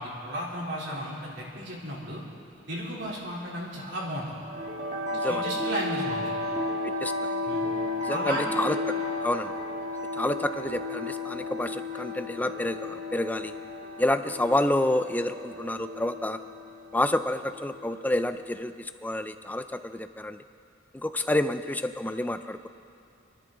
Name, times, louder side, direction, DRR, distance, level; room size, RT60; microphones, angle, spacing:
voice 1, 0.0-2.2 2.7-4.2 5.1-6.3 7.4-7.6 8.1-8.5, equal, 60° right, -5 dB, 3.6 m, -34 dB
sound 1, 4.4-18.5, left 2 dB, 35° right, 1.8 m, -34 dB
voice 2, 5.1-5.5 7.0-7.4 8.0-8.8 9.2-9.5 10.1-13.5 14.0-16.4 16.9-20.4 20.9-22.7, left 1 dB, 10° left, 9 dB, 0.4 m, -29 dB
29.0 x 11.0 x 3.9 m, 2.6 s
head